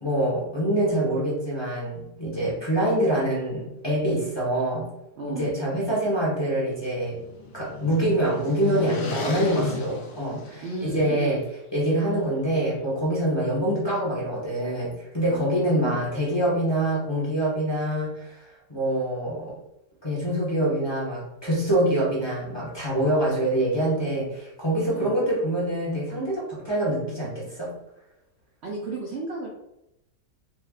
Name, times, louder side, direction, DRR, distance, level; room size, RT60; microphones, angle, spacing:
voice 1, 0.0-4.9 5.3-7.2 7.5-11.4 11.7-18.4 18.7-19.5 20.0-27.7, right 1 dB, 15° left, -7 dB, 1.1 m, -25 dB
voice 2, 5.2-5.5 10.6-11.3 15.3-16.1 24.9-25.1 28.6-29.5, right 3 dB, 65° right, -1 dB, 0.6 m, -33 dB
sound 1, 6.5-11.2, left 5 dB, 75° left, 1.3 m, -34 dB
4.6 x 3.1 x 2.4 m, 0.86 s
omnidirectional pair, 1.9 m